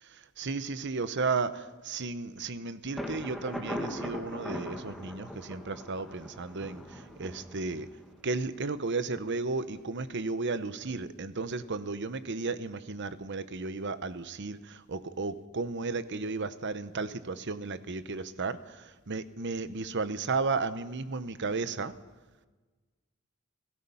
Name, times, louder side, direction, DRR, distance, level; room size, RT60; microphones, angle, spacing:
voice 1, 0.4-7.9 8.2-21.9, right 3 dB, 60° right, 13 dB, 1.0 m, -34 dB
Thunder, 3.0-8.6, equal, ahead, 2.3 m, -40 dB
30.0 x 16.0 x 5.6 m, 1.3 s
head